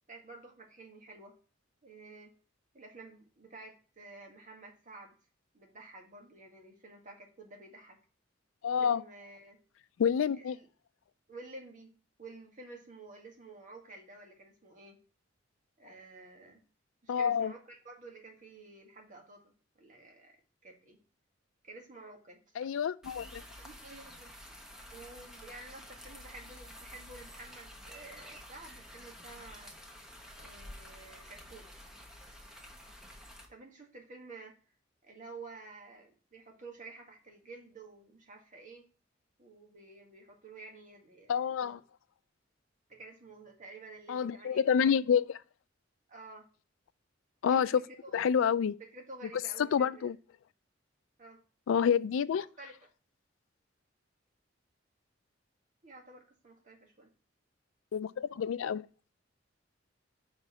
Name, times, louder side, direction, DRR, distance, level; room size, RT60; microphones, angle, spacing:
voice 1, 0.1-1.3 1.8-2.3 2.7-5.1 5.5-8.0 8.8-9.6 10.4-10.7 11.3-15.0 15.8-16.6 17.0-20.4 20.6-21.0 21.6-22.4 23.2-24.3 24.9-29.7 30.4-31.7 33.5-34.6 35.0-38.8 39.4-41.8 42.9-44.9 46.1-46.5 47.5-47.7 48.0-50.1 51.2-51.4 52.3-52.9 55.8-57.1, right 3 dB, 40° right, 1.8 m, -51 dB
voice 2, 8.6-9.0 10.0-10.6 17.1-17.5 22.6-23.4 41.3-41.8 44.1-45.2 47.4-47.7 48.1-48.7 49.6-50.2 51.7-52.4 57.9-58.8, left 7 dB, 90° left, 0.3 m, -28 dB
sound 1, 23.0-33.5, equal, 5° right, 1.0 m, -50 dB
5.2 x 4.8 x 5.6 m
head